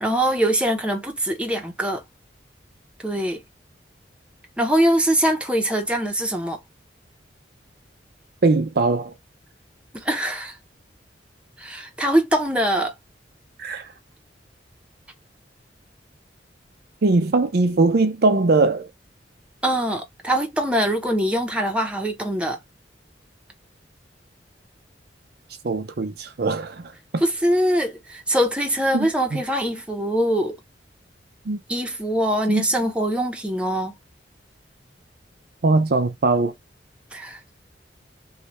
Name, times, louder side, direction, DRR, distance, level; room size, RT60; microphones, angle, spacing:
voice 1, 0.0-2.0 3.0-3.4 4.6-6.6 9.9-10.6 11.6-12.9 19.6-22.6 27.2-30.6 31.7-33.9 37.1-37.4, equal, 5° right, 0.8 m, -23 dB
voice 2, 8.4-9.1 13.6-13.9 17.0-18.9 25.6-27.2 28.9-29.4 31.5-31.6 32.5-32.6 35.6-36.5, right 3 dB, 60° right, 0.6 m, -21 dB
3.2 x 2.3 x 2.9 m
head